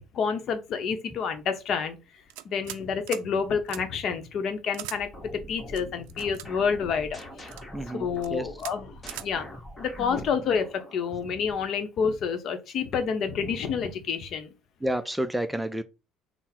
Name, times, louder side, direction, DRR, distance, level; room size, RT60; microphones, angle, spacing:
voice 1, 0.0-2.0 2.4-7.5 7.9-8.9 9.2-9.5 9.8-14.5, left 6 dB, 55° left, 0.7 m, -29 dB
sound 1, 2.3-2.8 3.1-3.3 3.7-3.8 4.7-5.0 5.7-6.5 7.2-7.6 8.2-8.3 8.6-8.8 9.1-9.3, right 14 dB, 90° right, 0.3 m, -39 dB
sound 2, 5.0-11.2, equal, 20° left, 1.1 m, -44 dB
voice 2, 7.7-8.5 10.0-10.2 14.8-15.8, right 1 dB, 5° right, 0.3 m, -30 dB
3.8 x 2.0 x 4.3 m
cardioid pair, 105°, 0 cm